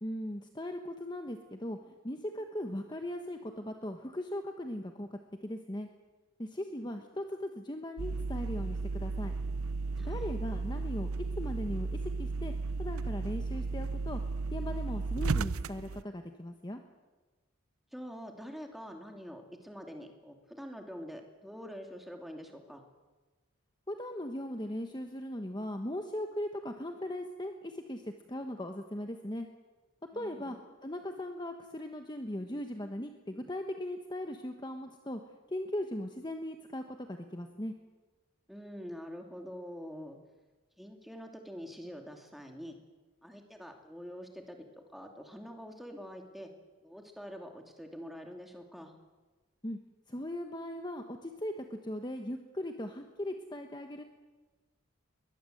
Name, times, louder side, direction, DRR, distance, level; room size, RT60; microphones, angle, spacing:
voice 1, 0.0-5.9 6.4-9.3 10.0-11.1 11.4-11.9 12.2-12.5 12.8-14.2 14.5-16.8 23.9-29.5 30.1-30.6 30.8-35.2 35.5-37.7 49.6-49.8 50.1-54.0, left 1 dB, 20° left, 5 dB, 1.2 m, -38 dB
sound 1, 8.0-16.0, right 3 dB, 90° right, 0.6 m, -34 dB
voice 2, 10.0-10.3 17.9-22.8 30.1-30.6 38.5-40.2 40.8-42.8 43.2-44.6 44.9-46.5 46.8-48.9, equal, ahead, 3 dB, 2.6 m, -45 dB
22.5 x 20.0 x 7.9 m, 1.2 s
head